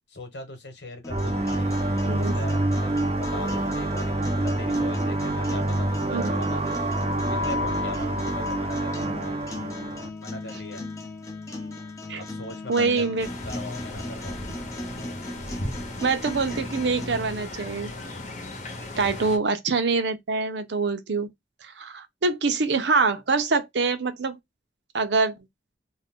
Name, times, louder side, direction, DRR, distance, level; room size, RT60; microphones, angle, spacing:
voice 1, 0.1-6.9 7.3-9.4 10.2-10.8 12.2-14.5 19.0-19.2, left 1 dB, 85° left, 1.2 m, -40 dB
sound 1, 1.0-17.1, left 1 dB, 20° left, 0.5 m, -38 dB
sound 2, 1.1-10.1, right 1 dB, 35° right, 0.4 m, -26 dB
voice 2, 12.7-13.3 16.0-17.9 19.0-21.3 21.6-24.4 24.9-25.4, right 4 dB, 85° right, 0.7 m, -25 dB
sound 3, 13.2-19.4, left 1 dB, 40° left, 0.8 m, -36 dB
2.5 x 2.3 x 3.5 m
head